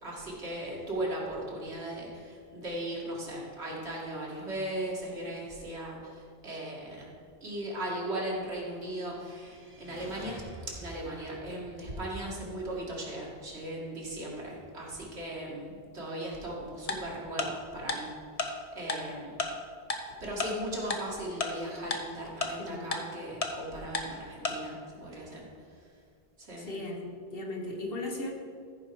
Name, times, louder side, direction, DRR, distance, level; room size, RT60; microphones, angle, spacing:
voice 1, 0.0-7.1 7.4-18.1 18.4-19.4 20.2-25.5 26.4-26.7, right 1 dB, 85° right, -3 dB, 2.3 m, -38 dB
sound 1, 8.9-13.2, right 1 dB, 10° right, 1.8 m, -49 dB
Tick-tock, 16.9-17.0 17.4-17.5 17.9-18.0 18.4-18.5 18.9-19.0 19.4-19.5 19.9-20.0 20.4-20.5 20.9-21.0 21.4-21.5 21.9-22.0 22.4-22.5 22.9-23.0 23.4-23.5 23.9-24.0 24.4-24.5, left 4 dB, 40° left, 0.8 m, -30 dB
voice 2, 22.6-23.1 26.6-28.3, left 2 dB, 60° left, 0 dB, 1.6 m, -37 dB
14.5 x 5.0 x 4.6 m, 2.2 s
omnidirectional pair, 1.1 m